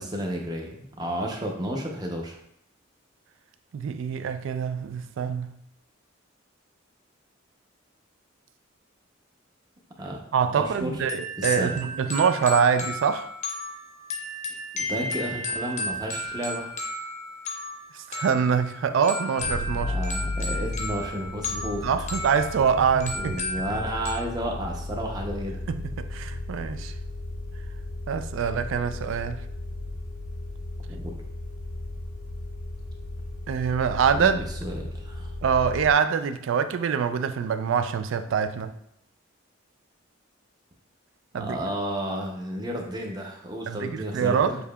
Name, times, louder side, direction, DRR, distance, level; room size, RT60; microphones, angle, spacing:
voice 1, 0.0-2.4 10.0-10.2 10.5-11.0 11.4-11.8 14.8-16.7 19.8-21.8 22.8-25.6 30.9-31.1 34.1-35.3 41.3-44.6, equal, 20° right, 0.6 m, -32 dB
voice 2, 3.7-5.6 10.3-13.3 18.1-20.0 21.8-23.4 25.7-26.9 28.1-29.4 33.5-34.4 35.4-38.7 41.3-41.6 43.7-44.5, right 6 dB, 70° right, 0.3 m, -25 dB
sound 1, 11.1-24.1, left 1 dB, 35° left, 0.6 m, -34 dB
sound 2, 19.4-35.9, left 2 dB, 85° left, 0.7 m, -35 dB
6.8 x 2.8 x 2.2 m
head